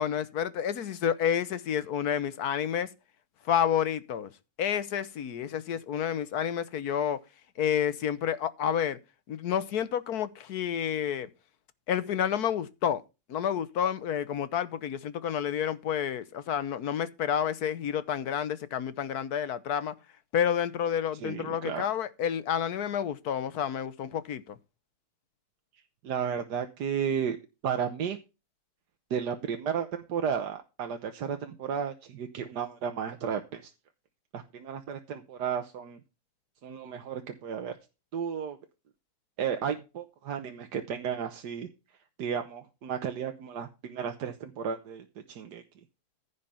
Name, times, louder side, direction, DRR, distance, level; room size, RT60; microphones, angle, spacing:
voice 1, 0.0-2.9 3.4-4.3 4.6-7.2 7.6-9.0 9.3-11.3 11.9-13.0 13.3-19.9 20.3-24.6, left 9 dB, 70° left, 1.5 m, -29 dB
voice 2, 21.2-21.9 26.0-27.4 27.6-28.2 29.1-33.7 34.3-36.0 36.6-37.7 38.1-38.6 39.4-41.7 42.2-45.6, right 7 dB, 85° right, 1.6 m, -33 dB
15.0 x 5.1 x 5.7 m
omnidirectional pair, 1.7 m